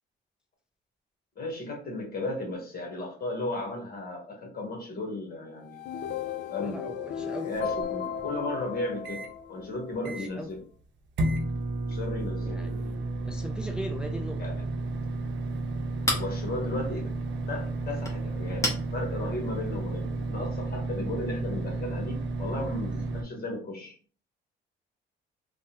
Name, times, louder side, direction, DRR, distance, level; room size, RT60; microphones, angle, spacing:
voice 1, 1.4-5.8 6.5-7.0 7.3-9.2 9.5-10.6 11.9-12.6 14.4-14.6 16.1-17.1 17.5-24.0, left 2 dB, 50° left, 1 dB, 1.2 m, -35 dB
sound 1, 5.6-9.9, left 7 dB, 65° left, 0.4 m, -35 dB
voice 2, 6.6-7.5 9.9-10.5 12.4-14.4, right 1 dB, 5° right, 5 dB, 0.3 m, -39 dB
sound 2, 7.5-9.3 9.7-9.8 10.1-10.5 11.2-23.2, right 2 dB, 65° right, 0.7 m, -32 dB
Chink clink, 14.8-20.3, left 1 dB, 15° left, 1.0 m, -37 dB
3.3 x 2.1 x 2.8 m, 0.42 s
cardioid pair, 90°, 20 cm